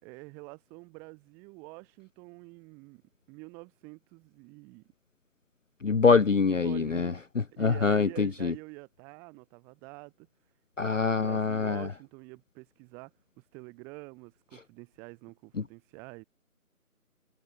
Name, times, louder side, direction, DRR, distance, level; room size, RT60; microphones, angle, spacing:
voice 1, 0.0-3.0 3.3-4.8 6.4-7.2 7.5-10.3 10.8-16.2, right 29 dB, 5° right, 3.5 m, -47 dB
voice 2, 5.8-7.1 7.6-8.5 10.8-11.9, left 5 dB, 60° left, 0.5 m, -24 dB
figure-of-eight pair, 160°, 45 cm